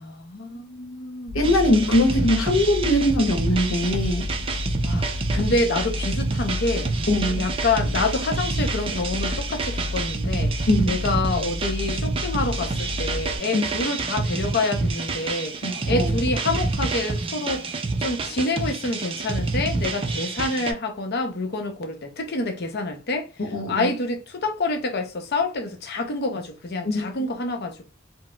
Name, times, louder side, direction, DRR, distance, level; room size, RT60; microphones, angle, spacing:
voice 1, 0.0-1.4 4.8-6.9 7.3-10.5 10.8-15.6 15.9-17.7 18.0-23.3 23.7-27.8, left 2 dB, 50° left, 0.6 m, -27 dB
voice 2, 1.3-4.3 7.1-7.5 10.7-11.0 13.5-13.6 15.6-16.1 23.5-23.9 26.9-27.1, left 1 dB, 85° left, 0.8 m, -21 dB
sound 1, 1.3-13.4, left 2 dB, 75° right, 0.6 m, -31 dB
sound 2, 1.4-20.7, right 3 dB, 25° right, 0.4 m, -28 dB
4.1 x 2.0 x 2.2 m
head